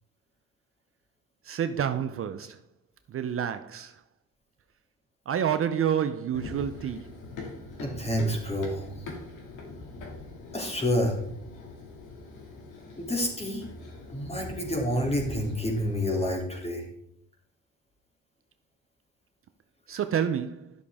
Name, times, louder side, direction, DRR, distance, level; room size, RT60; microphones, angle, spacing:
voice 1, 1.4-2.6 3.1-4.0 5.3-7.1 19.9-20.7, right 8 dB, 45° right, 0.5 m, -29 dB
Run, 6.3-16.4, left 3 dB, 85° left, 2.3 m, -42 dB
voice 2, 7.8-8.9 10.5-11.2 13.0-13.6 14.1-16.8, equal, 20° left, 2.9 m, -28 dB
11.0 x 6.8 x 3.6 m
cardioid pair, 90°, 30 cm